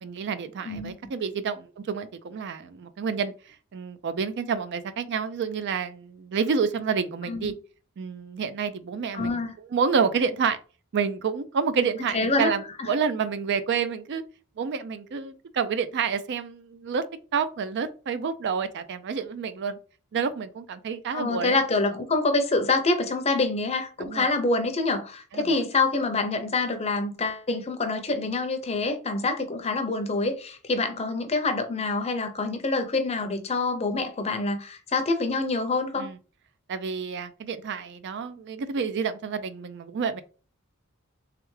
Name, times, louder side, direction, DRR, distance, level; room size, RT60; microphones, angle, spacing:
voice 1, 0.0-7.5 8.0-9.4 9.7-10.6 10.9-14.2 14.6-17.0 17.3-19.8 20.1-21.6 24.0-24.3 25.3-25.6 36.0-36.2 36.7-40.2, right 6 dB, 50° right, 0.4 m, -29 dB
voice 2, 9.1-9.5 12.1-12.5 12.8-12.9 21.1-36.1, left 3 dB, 30° left, 0.6 m, -26 dB
3.4 x 3.3 x 3.2 m
head